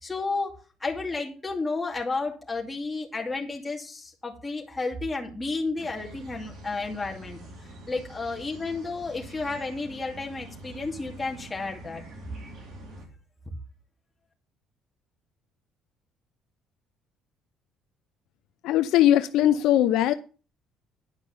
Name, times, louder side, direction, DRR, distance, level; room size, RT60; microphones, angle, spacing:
voice 1, 0.0-7.4 7.9-12.0, left 3 dB, 15° left, -1 dB, 2.4 m, -32 dB
sound 1, 5.8-13.1, right 1 dB, 50° right, 4.1 m, -45 dB
voice 2, 18.6-20.1, left 12 dB, 75° left, 11 dB, 0.6 m, -20 dB
10.5 x 5.2 x 6.9 m, 0.36 s
cardioid pair, 140°, 0 cm